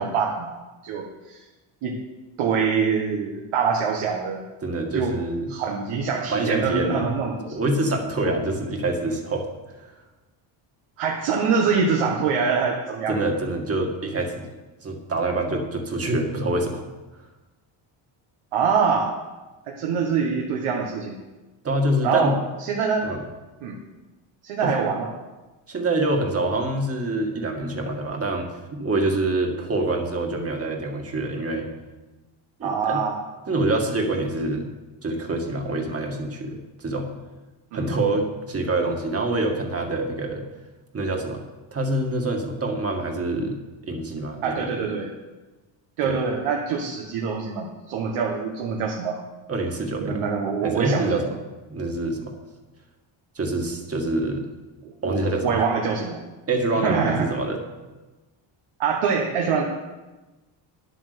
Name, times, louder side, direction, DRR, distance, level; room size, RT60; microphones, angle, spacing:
voice 1, 0.0-1.4 1.8-2.0 2.4-4.5 4.9-5.2 5.5-7.6 8.2-8.3 11.0-13.2 13.8-13.9 18.5-19.1 19.7-21.2 22.0-23.1 23.6-23.8 24.4-25.1 32.6-33.2 37.7-37.9 44.4-45.1 46.0-49.2 50.0-51.2 54.8-56.2 56.8-57.3 58.8-59.6, right 5 dB, 80° right, 0 dB, 1.6 m, -25 dB
voice 2, 4.6-5.5 6.3-7.0 7.5-9.5 13.1-14.5 14.8-16.8 21.6-22.4 23.0-23.2 24.6-24.7 25.7-31.7 32.6-33.0 33.5-34.7 35.0-37.1 37.7-40.4 40.9-41.4 41.7-43.6 43.9-44.7 46.0-46.2 49.5-50.2 50.6-51.3 51.7-52.3 53.4-54.4 55.0-55.6 56.5-57.6, right 2 dB, 30° right, 2 dB, 1.9 m, -26 dB
10.0 x 8.5 x 6.8 m, 1.2 s
cardioid pair, 120°, 50 cm